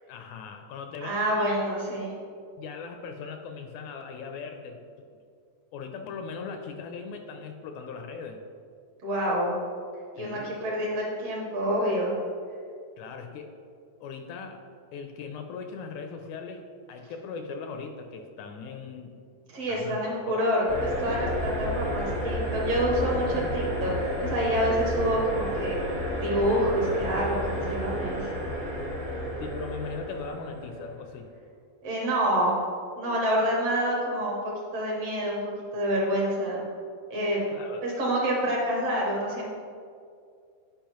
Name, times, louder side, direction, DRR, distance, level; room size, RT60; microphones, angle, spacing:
voice 1, 0.1-1.5 2.6-4.8 5.7-8.4 10.2-10.8 13.0-13.5 14.0-14.6 14.9-16.6 16.9-19.2 19.7-20.5 23.3-23.5 29.4-31.3 37.5-37.8, left 5 dB, 80° left, 5 dB, 1.8 m, -39 dB
voice 2, 1.0-2.1 9.0-9.5 10.1-12.2 19.5-20.6 21.0-25.8 26.2-28.3 31.8-32.5 33.0-36.6 37.1-37.4 37.8-39.5, equal, 60° right, -3 dB, 2.1 m, -27 dB
sound 1, 20.7-31.0, equal, 30° right, 0.7 m, -31 dB
10.0 x 5.2 x 3.0 m, 2.3 s
omnidirectional pair, 3.6 m